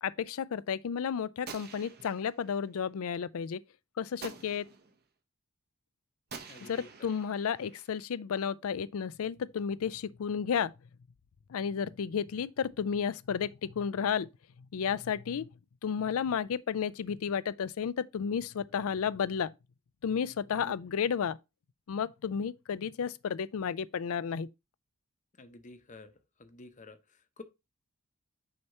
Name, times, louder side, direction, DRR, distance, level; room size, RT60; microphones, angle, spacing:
voice 1, 0.0-3.6 4.0-4.7 6.7-10.7 11.5-14.3 14.7-15.5 15.8-19.5 20.0-21.4 21.9-24.5, left 7 dB, 70° left, 0.4 m, -32 dB
Gunshot gunfire, 1.5-2.6 4.2-5.0 6.3-8.0, right 5 dB, 45° right, 1.0 m, -48 dB
voice 2, 6.5-7.1 20.6-20.7 25.3-26.1 26.4-27.4, left 2 dB, 35° left, 0.8 m, -51 dB
6.4 x 2.9 x 5.6 m
head